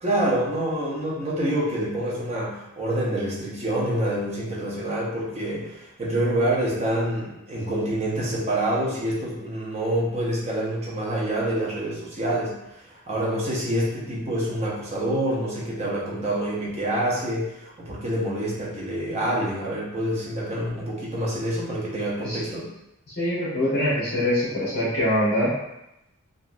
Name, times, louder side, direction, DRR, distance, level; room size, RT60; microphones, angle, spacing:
voice 1, 0.0-22.7, right 1 dB, 30° right, -5 dB, 0.7 m, -27 dB
voice 2, 23.2-25.5, left 1 dB, 45° left, -8 dB, 0.9 m, -24 dB
2.9 x 2.5 x 2.5 m, 0.88 s
head